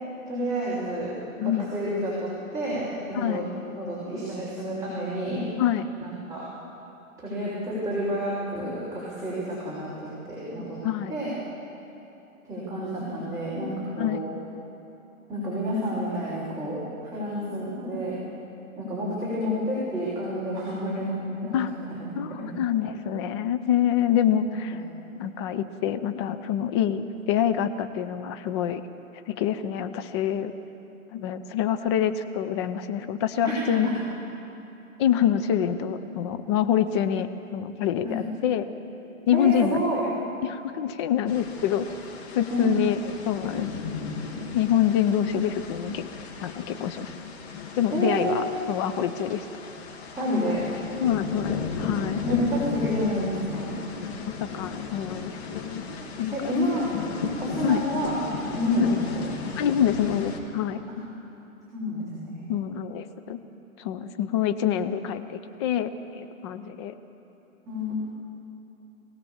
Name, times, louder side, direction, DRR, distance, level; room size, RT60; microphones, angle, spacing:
voice 1, 0.3-1.1 1.4-3.5 3.8-5.5 6.0-6.4 7.2-9.9 10.3-10.8 11.1-11.3 12.4-14.2 15.3-18.2 18.8-21.5 21.9-22.5 24.7-24.8 33.4-33.9 38.0-38.2 39.3-40.0 42.5-42.8 47.9-48.3 50.2-50.6 52.2-53.8 56.3-56.9 57.4-58.2 58.6-59.2 60.9-61.0 61.7-62.5 67.7-68.0, equal, 10° right, -11 dB, 5.6 m, -29 dB
voice 2, 1.4-1.7 3.1-3.4 5.6-5.9 10.8-11.1 14.0-14.2 21.5-21.7 22.2-24.8 25.2-28.8 29.3-30.5 31.1-33.9 35.0-38.6 39.3-39.8 40.4-41.9 42.3-43.7 44.5-46.1 46.4-47.1 47.8-49.4 51.0-52.2 54.4-55.8 56.2-56.5 57.6-57.8 58.8-59.0 59.6-60.8 62.5-63.4 63.8-66.9, left 9 dB, 20° left, 9 dB, 0.5 m, -26 dB
sound 1, 41.3-60.4, left 5 dB, 50° left, 2.9 m, -35 dB
24.0 x 18.0 x 7.2 m, 2.9 s
hypercardioid pair, 140°, 43 cm